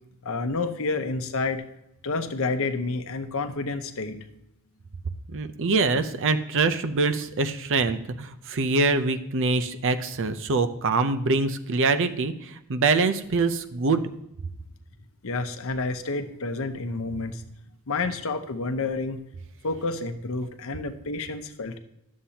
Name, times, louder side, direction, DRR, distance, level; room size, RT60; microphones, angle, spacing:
voice 1, 0.2-1.6 2.0-4.3 15.2-17.4 17.9-19.2 19.6-21.8, left 3 dB, 65° left, 8 dB, 0.8 m, -29 dB
voice 2, 5.3-14.0, right 3 dB, 60° right, 11 dB, 0.6 m, -24 dB
11.5 x 7.5 x 2.8 m, 0.84 s
head